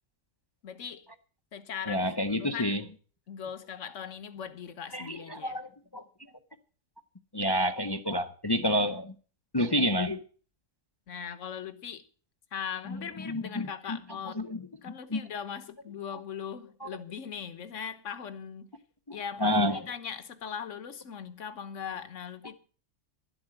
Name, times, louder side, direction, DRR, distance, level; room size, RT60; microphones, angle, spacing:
voice 1, 0.6-1.1 1.5-2.8 3.3-5.6 11.1-12.0 12.5-14.4 14.8-18.7 19.1-22.5, left 7 dB, 65° left, 1.4 m, -39 dB
voice 2, 1.9-2.8 4.9-6.0 7.3-9.1 9.5-10.2 12.9-14.0 14.4-14.6 15.1-15.2 16.8-16.9 19.1-19.8, equal, 25° left, 0.6 m, -29 dB
12.0 x 7.9 x 7.8 m
omnidirectional pair, 1.4 m